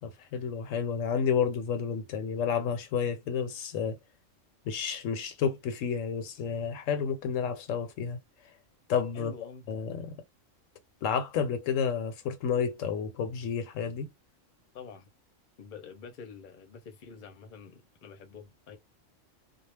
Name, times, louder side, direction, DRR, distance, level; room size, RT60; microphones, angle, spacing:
voice 1, 0.0-4.0 4.6-8.2 8.9-9.3 9.7-10.2 11.0-14.1, left 6 dB, 85° left, 1.0 m, -30 dB
voice 2, 9.1-9.6 9.9-10.0 14.7-15.1 15.6-18.8, left 6 dB, 50° left, 0.7 m, -47 dB
2.3 x 2.1 x 3.2 m
omnidirectional pair, 1.3 m